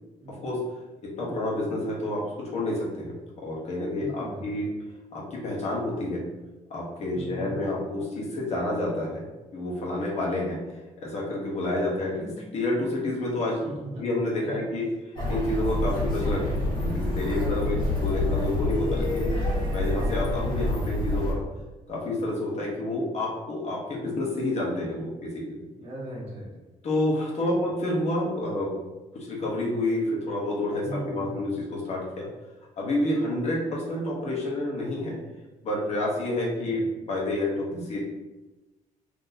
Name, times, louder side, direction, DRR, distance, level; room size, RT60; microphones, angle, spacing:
voice 1, 0.3-0.6 1.2-4.7 5.1-6.3 6.7-9.3 9.5-10.6 11.0-13.6 14.0-14.9 15.3-19.3 19.7-21.4 21.9-25.6 26.8-28.7 29.1-32.3 32.8-35.2 35.6-38.0, left 1 dB, 50° left, -4 dB, 1.0 m, -29 dB
voice 2, 4.0-4.6 7.1-7.6 13.6-14.1 14.4-14.7 17.3-18.1 25.8-26.5 27.5-27.7 28.4-28.5 30.8-31.3 36.4-36.8, right 1 dB, 50° right, -4 dB, 1.2 m, -38 dB
sound 1, 15.2-21.3, left 1 dB, 35° left, 1.4 m, -27 dB
3.8 x 2.8 x 2.7 m, 1.1 s
cardioid pair, 145°, 14 cm